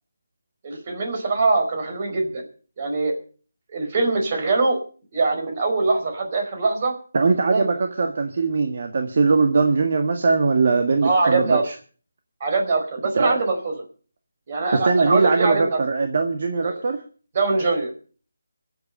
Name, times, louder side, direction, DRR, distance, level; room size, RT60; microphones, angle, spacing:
voice 1, 0.6-2.4 2.8-3.1 3.7-4.8 5.1-6.9 7.5-7.7 11.0-11.6 12.4-13.7 14.5-15.8 16.6-16.7 17.3-17.9, right 3 dB, 35° right, 3 dB, 4.9 m, -22 dB
voice 2, 7.1-11.7 13.1-13.4 14.7-17.0, right 4 dB, 50° right, 5 dB, 1.7 m, -21 dB
24.0 x 8.2 x 5.5 m, 0.41 s
figure-of-eight pair, 165°, 0 cm